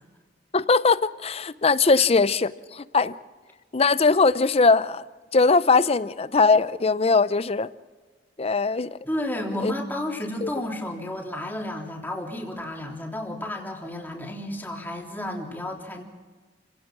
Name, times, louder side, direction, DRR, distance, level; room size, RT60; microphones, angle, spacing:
voice 1, 0.5-3.2 3.7-5.0 5.3-7.7 8.4-9.0 9.6-9.7 10.4-10.5, left 4 dB, 35° left, 0.6 m, -20 dB
voice 2, 9.1-16.0, left 1 dB, 10° left, 3.3 m, -32 dB
29.5 x 17.0 x 6.1 m
head